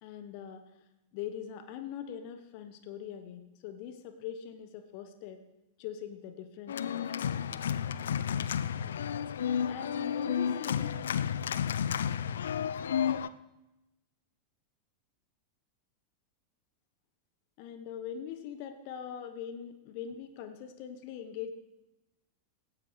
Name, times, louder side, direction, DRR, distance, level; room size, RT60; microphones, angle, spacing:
voice 1, 0.0-0.7 1.1-5.4 5.8-7.0 9.7-11.0 17.6-21.5, left 9 dB, 45° left, 8 dB, 1.0 m, -42 dB
Organ, 6.7-13.3, left 8 dB, 65° left, 0.4 m, -31 dB
17.5 x 16.0 x 3.3 m, 0.96 s
figure-of-eight pair, 90°, 0 cm